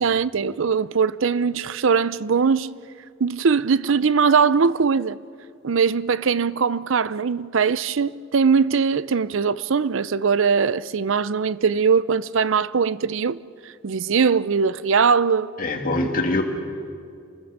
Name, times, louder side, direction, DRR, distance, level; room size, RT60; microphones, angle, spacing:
voice 1, 0.0-2.7 3.2-5.2 5.6-13.4 13.6-15.5, right 5 dB, 65° right, 0.5 m, -21 dB
voice 2, 15.6-16.4, left 2 dB, 40° left, 2.5 m, -23 dB
29.0 x 20.5 x 6.6 m
head